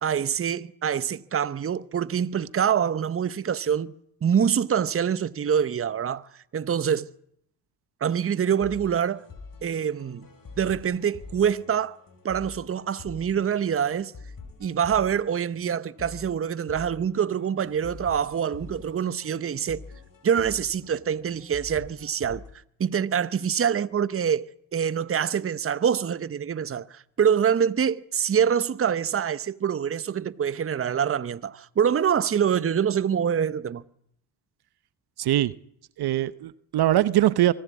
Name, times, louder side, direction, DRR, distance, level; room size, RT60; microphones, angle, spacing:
voice 1, 0.0-3.9 4.2-7.1 8.0-9.2 9.6-10.3 10.6-12.0 12.2-14.1 14.6-19.8 20.2-22.4 22.8-24.5 24.7-33.8, right 8 dB, 30° right, 0.9 m, -25 dB
sound 1, 8.1-22.5, left 4 dB, 45° left, 4.8 m, -46 dB
voice 2, 35.2-35.5 36.0-37.5, right 13 dB, 60° right, 0.9 m, -22 dB
24.5 x 15.0 x 8.4 m
supercardioid pair, 75°, 45 cm